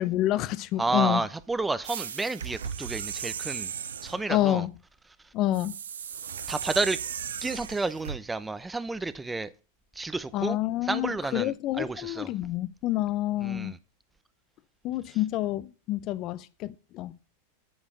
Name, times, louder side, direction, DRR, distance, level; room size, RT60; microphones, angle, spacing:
voice 1, 0.0-1.2 4.3-4.7 5.3-5.7 10.3-13.7 14.8-17.2, left 14 dB, 45° left, 0.7 m, -28 dB
voice 2, 0.8-3.7 4.0-4.7 6.5-7.0 7.4-9.5 10.0-10.6 10.8-12.3 13.4-13.8, right 3 dB, 10° right, 0.7 m, -30 dB
sound 1, 1.8-4.3 5.5-8.2, right 8 dB, 75° right, 0.8 m, -36 dB
8.8 x 7.2 x 6.7 m
hypercardioid pair, 95°, 0 cm